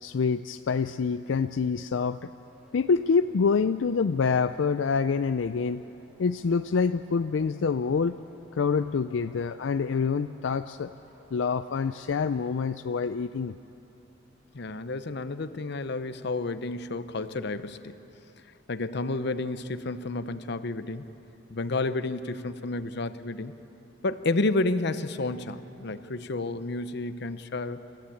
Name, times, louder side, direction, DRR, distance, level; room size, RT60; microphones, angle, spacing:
voice 1, 0.0-2.3 2.7-5.8 6.2-8.2 8.5-10.9 11.3-13.6, left 5 dB, 85° left, 11 dB, 0.4 m, -26 dB
sound 1, 2.4-12.4, equal, 5° right, 3.5 m, -59 dB
voice 2, 14.5-17.9 18.7-21.1 21.5-23.5 24.0-27.9, left 2 dB, 60° left, 12 dB, 0.8 m, -31 dB
27.5 x 14.5 x 8.6 m, 3.0 s
head